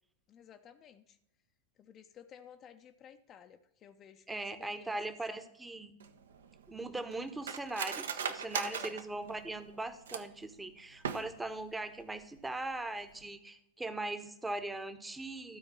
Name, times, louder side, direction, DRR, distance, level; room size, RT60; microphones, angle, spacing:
voice 1, 0.3-1.2 1.8-5.5 8.6-9.0, left 9 dB, 30° left, 7 dB, 0.5 m, -55 dB
voice 2, 4.3-6.0 6.7-15.6, right 2 dB, 10° right, 10 dB, 0.8 m, -40 dB
Cutlery silverware, 6.0-10.5 10.9-11.6 11.9-12.0 12.4-12.7 13.1-13.2, right 7 dB, 65° right, 0.6 m, -39 dB
12.5 x 4.4 x 6.0 m, 0.81 s
figure-of-eight pair, 90°, 0 cm